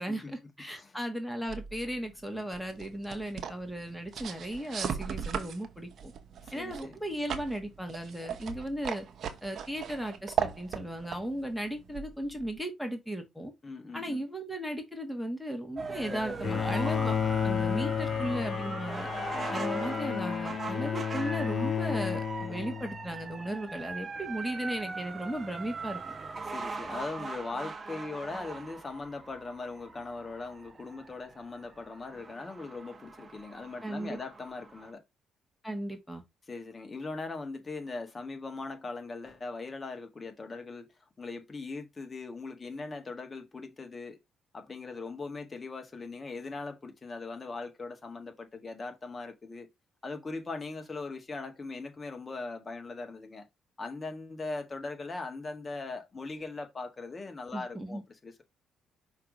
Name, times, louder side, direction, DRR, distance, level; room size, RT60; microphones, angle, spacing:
voice 1, 0.0-6.1 6.5-9.0 9.4-13.5 13.9-17.2 17.4-19.1 19.5-26.0 33.8-34.2 35.6-36.2 57.5-58.0, right 1 dB, 5° left, 1.6 m, -36 dB
voice 2, 0.7-1.0 6.4-7.0 13.6-14.2 16.0-16.6 19.3-19.9 26.4-35.0 36.5-40.9 41.2-44.2 44.5-49.7 50.0-53.5 53.8-58.4, left 3 dB, 30° left, 1.7 m, -40 dB
sound 1, 1.5-12.6, right 7 dB, 60° right, 1.1 m, -38 dB
sound 2, 15.8-34.9, right 4 dB, 35° right, 0.8 m, -41 dB
Bowed string instrument, 16.4-23.2, left 7 dB, 55° left, 0.4 m, -32 dB
5.8 x 3.2 x 5.2 m
cardioid pair, 80°, 0 cm